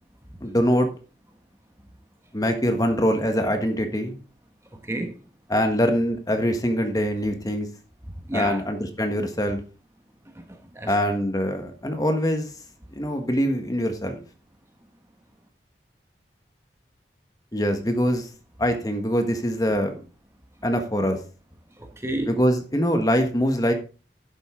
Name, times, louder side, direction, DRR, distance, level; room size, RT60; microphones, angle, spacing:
voice 1, 0.4-0.9 2.3-4.1 5.5-7.7 8.3-9.6 10.9-12.5 12.9-14.2 17.5-18.3 18.6-19.9 20.6-21.2 22.3-23.7, equal, 20° left, 1.5 m, -23 dB
voice 2, 4.7-5.2 8.3-8.6 10.3-11.2 21.8-22.4, right 1 dB, 15° right, 1.2 m, -32 dB
11.0 x 7.9 x 3.8 m
head